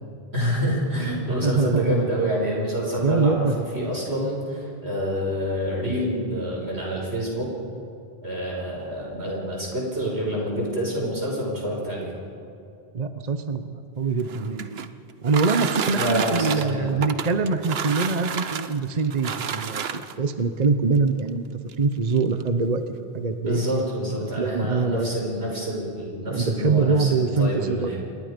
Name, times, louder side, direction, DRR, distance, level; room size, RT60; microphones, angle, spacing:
voice 1, 0.3-7.5 8.2-12.1 15.9-17.0 23.4-28.0, equal, 90° right, -2 dB, 6.0 m, -27 dB
voice 2, 1.4-2.1 3.0-3.6 12.9-14.8 15.2-21.4 21.8-22.8 23.1-23.8 24.4-25.1 26.3-27.9, right 4 dB, 40° right, 8 dB, 1.0 m, -24 dB
sound 1, 14.1-20.3 21.2-21.3 21.7-21.8 22.1-22.5, right 7 dB, 75° right, 1.1 m, -30 dB
27.5 x 22.0 x 5.2 m, 2.6 s
omnidirectional pair, 1.1 m